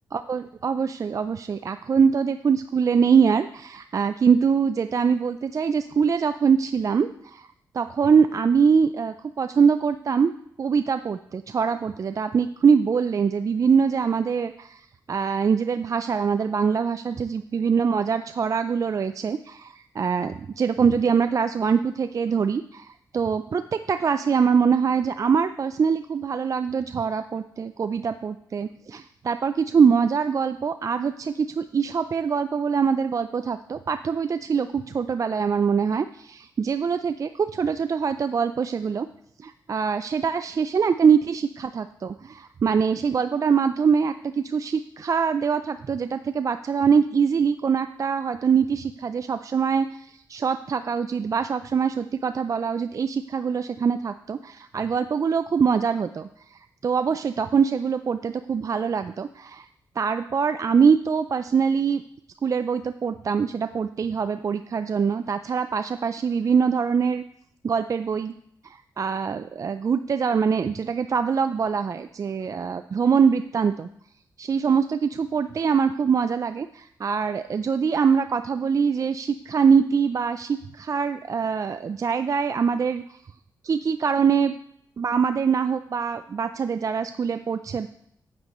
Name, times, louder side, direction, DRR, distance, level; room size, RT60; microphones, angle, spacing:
voice 1, 0.1-7.5 7.7-10.3 10.6-39.1 39.4-59.7 60.0-62.0 62.4-67.2 67.6-68.3 68.6-73.9 74.4-83.2 83.6-84.5 85.0-87.9, right 6 dB, 45° right, 10 dB, 0.4 m, -23 dB
9.3 x 8.5 x 3.0 m, 0.72 s
cardioid pair, 60°, 8 cm